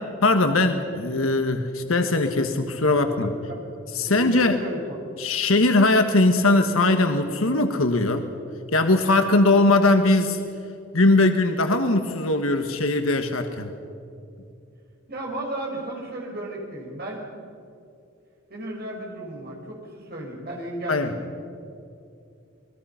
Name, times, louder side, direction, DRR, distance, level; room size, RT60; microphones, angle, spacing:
voice 1, 0.2-3.3 3.9-4.6 5.2-8.3 8.7-10.4 10.9-13.7 20.9-21.1, left 2 dB, 90° left, 6 dB, 1.4 m, -20 dB
voice 2, 3.2-3.6 4.1-5.0 15.1-17.3 18.5-21.2, right 1 dB, 50° right, -1 dB, 5.7 m, -34 dB
28.0 x 20.5 x 5.8 m, 2.5 s
head